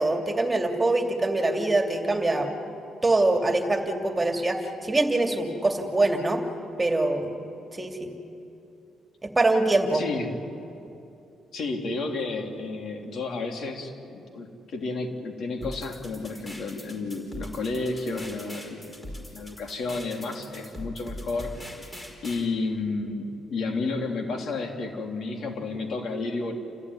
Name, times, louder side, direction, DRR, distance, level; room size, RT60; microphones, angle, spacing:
voice 1, 0.0-2.5 3.0-6.4 6.8-7.4 7.7-8.1 9.2-10.0, right 2 dB, 20° right, 4 dB, 2.7 m, -24 dB
voice 2, 9.9-10.4 11.5-21.5 22.2-26.5, left 3 dB, 60° left, 3 dB, 3.1 m, -31 dB
sound 1, 15.6-22.5, left 1 dB, 20° left, 4.8 m, -41 dB
29.0 x 15.0 x 9.7 m, 2.7 s
cardioid pair, 90°, 0 cm